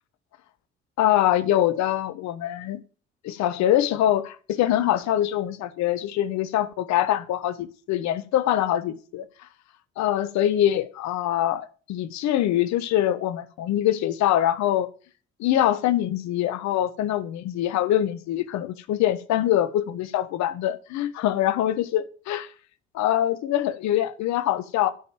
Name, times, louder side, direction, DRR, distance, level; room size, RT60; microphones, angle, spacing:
voice 1, 1.0-2.8 3.2-9.3 10.0-14.9 15.4-22.5 22.9-24.9, left 12 dB, 65° left, 1.1 m, -24 dB
9.2 x 5.4 x 7.5 m
hypercardioid pair, 55°, 30 cm